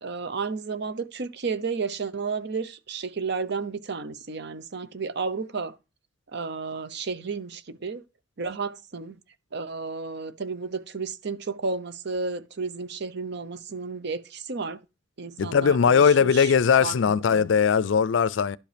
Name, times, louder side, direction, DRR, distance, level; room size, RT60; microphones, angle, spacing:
voice 1, 0.0-5.7 6.3-8.0 8.4-9.2 9.5-14.8 15.2-16.5 16.8-17.5, right 4 dB, 60° right, 0.8 m, -32 dB
voice 2, 15.4-18.6, left 6 dB, 70° left, 0.4 m, -20 dB
11.5 x 5.3 x 5.1 m
head